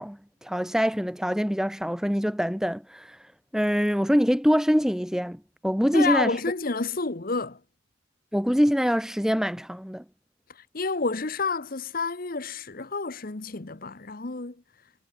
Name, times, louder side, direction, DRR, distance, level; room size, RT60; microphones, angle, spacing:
voice 1, 0.0-3.2 3.5-6.3 8.3-10.0, equal, 5° right, 2.1 m, -24 dB
voice 2, 5.9-7.6 10.5-14.6, left 4 dB, 45° left, 1.0 m, -29 dB
head